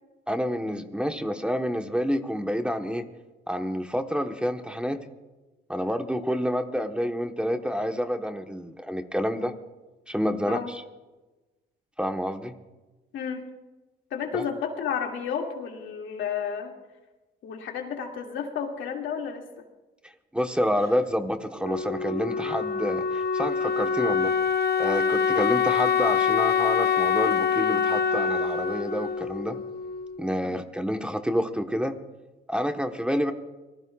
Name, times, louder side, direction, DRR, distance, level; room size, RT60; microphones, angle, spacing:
voice 1, 0.3-3.0 3.5-5.0 5.7-9.5 10.1-10.8 12.0-12.5 14.3-14.4 20.3-24.3 24.8-29.6 30.2-32.0 32.5-33.3, equal, 5° right, 6 dB, 1.2 m, -28 dB
voice 2, 14.1-16.7 17.4-19.4 30.4-30.5, left 7 dB, 80° left, 2 dB, 2.4 m, -31 dB
Wind instrument woodwind instrument, 21.6-30.3, left 6 dB, 55° left, 0.9 m, -25 dB
26.5 x 19.0 x 2.4 m, 1.1 s
cardioid pair, 90°, 20 cm